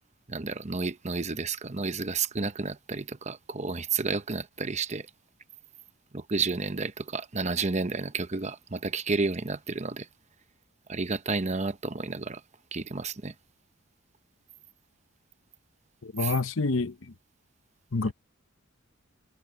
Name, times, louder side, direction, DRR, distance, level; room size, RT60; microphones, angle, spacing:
voice 1, 0.3-5.1 6.1-10.1 10.9-12.4 12.7-13.3 16.2-16.3 18.0-18.1, right 4 dB, 35° right, 0.9 m, -31 dB
voice 2, 16.0-16.9 17.9-18.1, left 3 dB, 65° left, 0.9 m, -27 dB
head